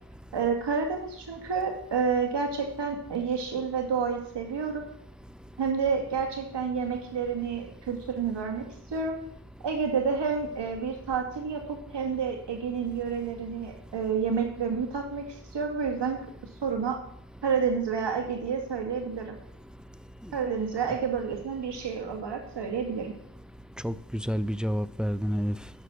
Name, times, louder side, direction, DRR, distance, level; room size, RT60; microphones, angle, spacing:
voice 1, 0.3-4.9 5.6-9.2 9.6-16.2 16.6-17.0 17.4-19.4 20.3-23.1, right 6 dB, 75° right, 2.3 m, -29 dB
voice 2, 23.8-25.7, equal, ahead, 0.4 m, -29 dB
11.5 x 6.5 x 6.3 m
cardioid pair, 60°, 42 cm